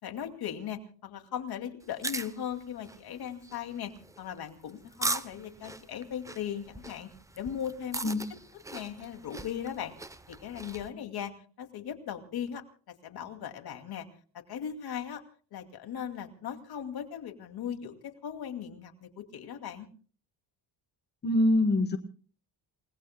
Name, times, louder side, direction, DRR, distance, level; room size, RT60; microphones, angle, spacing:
voice 1, 0.0-3.9 4.2-7.1 7.3-8.1 8.7-9.9 10.3-14.1 14.3-15.2 15.5-19.9, left 9 dB, 60° left, 6 dB, 2.5 m, -38 dB
sound 1, 1.8-10.9, right 2 dB, 5° right, 0.7 m, -40 dB
voice 2, 21.2-22.0, left 1 dB, 25° left, 8 dB, 1.1 m, -24 dB
29.0 x 19.5 x 2.2 m, 0.41 s
cardioid pair, 130°, 43 cm